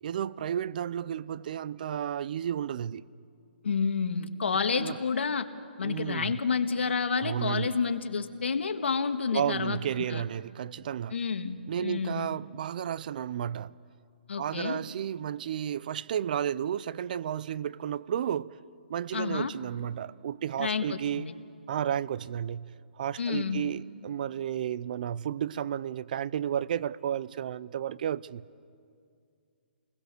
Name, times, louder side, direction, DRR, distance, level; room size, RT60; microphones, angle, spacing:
voice 1, 0.0-3.1 4.7-5.0 5.8-6.3 7.2-7.7 9.3-11.1 11.7-13.8 14.4-18.5 18.9-21.3 21.7-28.4, right 9 dB, 45° right, 0.5 m, -32 dB
voice 2, 3.6-5.5 5.8-9.8 10.1-10.2 11.1-12.3 14.3-14.8 19.1-19.5 20.6-21.3 23.2-23.6, left 5 dB, 80° left, 1.7 m, -29 dB
30.0 x 21.0 x 6.8 m
hypercardioid pair, 155°, 6 cm